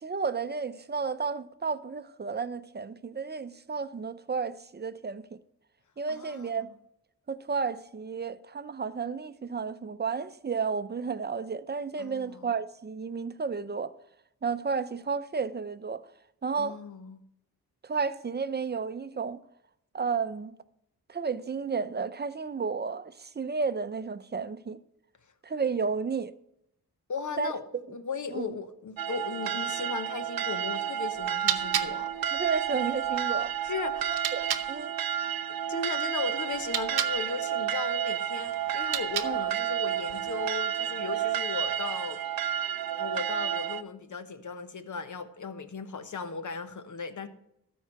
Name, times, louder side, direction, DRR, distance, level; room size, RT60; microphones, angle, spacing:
voice 1, 0.0-5.4 6.0-6.7 7.3-13.9 14.4-16.1 16.4-16.8 17.8-19.4 19.9-20.6 21.1-24.8 25.4-26.3 27.4-27.5 28.3-28.5 32.3-33.5 34.1-34.9 39.2-39.4, right 5 dB, 25° right, 0.7 m, -32 dB
voice 2, 6.1-6.7 12.0-12.5 16.6-17.2 27.1-27.6 27.9-32.1 33.6-34.3 35.5-42.2 43.0-47.3, left 5 dB, 50° left, 1.1 m, -37 dB
sound 1, 29.0-43.8, right 10 dB, 65° right, 0.6 m, -31 dB
sound 2, 31.1-34.7 36.5-37.2 38.7-39.6, right 9 dB, 85° right, 0.9 m, -34 dB
13.0 x 4.7 x 5.9 m
cardioid pair, 50°, 37 cm